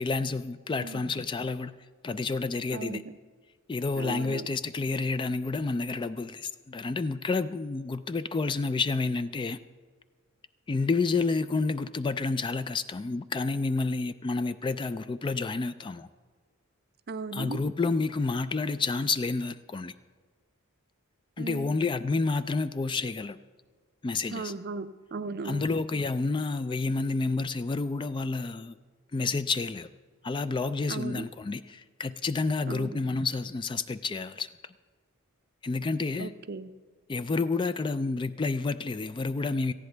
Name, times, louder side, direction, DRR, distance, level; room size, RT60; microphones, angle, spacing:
voice 1, 0.0-1.7 2.0-3.0 3.7-9.6 10.7-16.1 17.3-19.9 21.4-23.4 24.0-24.5 25.4-28.7 29.1-29.9 30.2-34.5 35.6-36.3 37.1-39.7, left 3 dB, 20° left, 13 dB, 0.3 m, -29 dB
voice 2, 2.7-3.1 4.0-4.5 17.1-17.6 21.4-21.7 24.3-25.7 30.9-31.2 32.7-33.0 36.2-36.7, right 4 dB, 45° right, 12 dB, 0.5 m, -37 dB
18.5 x 14.5 x 3.3 m, 1.5 s
head